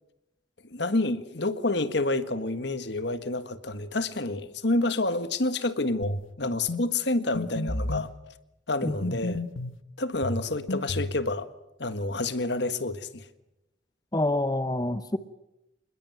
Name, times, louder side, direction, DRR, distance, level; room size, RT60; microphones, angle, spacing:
voice 1, 0.7-8.1 8.7-9.4 10.0-11.5 11.8-13.3, left 2 dB, 60° left, 1.6 m, -28 dB
sound 1, 6.0-6.3 6.7-6.8 7.3-8.1 9.0-9.8 10.2-11.2, left 1 dB, 85° left, 1.4 m, -31 dB
voice 2, 8.8-9.2 14.1-15.2, left 1 dB, 20° left, 0.9 m, -27 dB
27.5 x 21.0 x 9.3 m
head